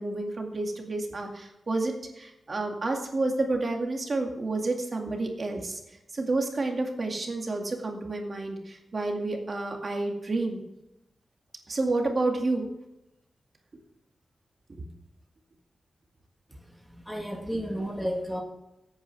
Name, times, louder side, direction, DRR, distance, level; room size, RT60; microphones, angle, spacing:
voice 1, 0.0-5.8 6.1-10.6 11.7-12.7 14.8-14.9 17.5-17.6, right 2 dB, 40° right, 2 dB, 2.2 m, -30 dB
voice 2, 16.9-18.4, equal, ahead, 1 dB, 1.6 m, -32 dB
16.0 x 9.2 x 3.5 m, 0.90 s
wide cardioid pair, 135°, 0 cm